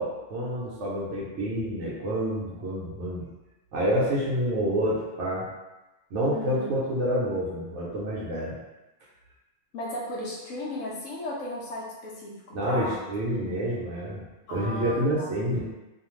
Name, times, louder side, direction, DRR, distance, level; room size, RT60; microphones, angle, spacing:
voice 1, 0.0-3.2 3.7-5.5 6.1-8.6 12.5-14.2 14.5-15.6, equal, 65° right, -6 dB, 0.9 m, -28 dB
voice 2, 6.3-6.7 9.7-13.0 13.4-13.6 14.5-15.4, left 1 dB, 70° left, -4 dB, 0.9 m, -35 dB
2.6 x 2.3 x 3.1 m, 1.1 s
omnidirectional pair, 1.5 m